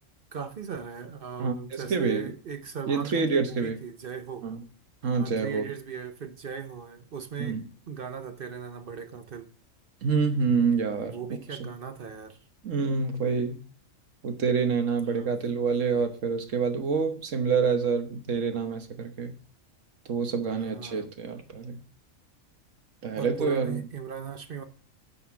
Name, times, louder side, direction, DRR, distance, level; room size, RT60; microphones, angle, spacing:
voice 1, 0.3-4.5 5.2-7.6 7.9-9.5 11.1-12.4 15.0-15.4 20.5-21.1 23.1-24.6, right 7 dB, 50° right, 0.9 m, -38 dB
voice 2, 1.4-2.3 2.9-3.8 4.4-4.6 5.0-5.6 7.4-7.6 10.0-11.2 11.6-11.7 12.6-13.6 14.2-19.4 20.1-21.8 23.0-23.8, right 5 dB, 70° right, 1.4 m, -27 dB
9.2 x 4.3 x 7.1 m
omnidirectional pair, 1.4 m